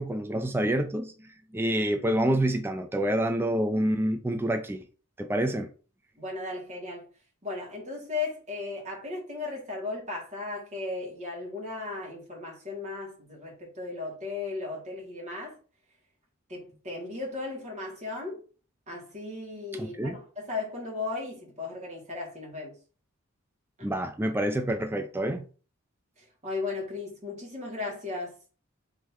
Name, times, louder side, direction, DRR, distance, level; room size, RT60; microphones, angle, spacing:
voice 1, 0.0-4.8 5.2-5.7 19.8-20.1 23.8-25.5, right 1 dB, 10° right, 0.4 m, -27 dB
voice 2, 6.2-7.1 7.4-15.6 16.5-18.4 18.9-22.8 23.8-23.9 26.2-28.4, left 3 dB, 30° right, 1.9 m, -36 dB
3.7 x 3.3 x 4.4 m
head